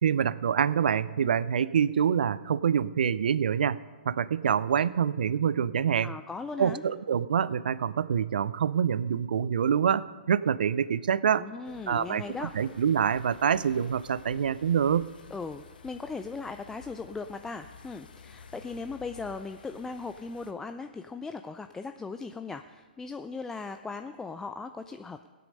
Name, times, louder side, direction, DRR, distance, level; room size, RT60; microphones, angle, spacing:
voice 1, 0.0-3.8 4.1-6.1 6.6-11.5 11.9-15.1, right 8 dB, 65° right, 18 dB, 0.4 m, -26 dB
voice 2, 6.0-6.8 11.4-12.5 15.3-25.3, left 4 dB, 10° left, 8 dB, 0.4 m, -38 dB
sound 1, 11.6-20.5, left 6 dB, 65° left, 1.0 m, -52 dB
17.0 x 8.5 x 5.3 m, 1.4 s
figure-of-eight pair, 120°, 5 cm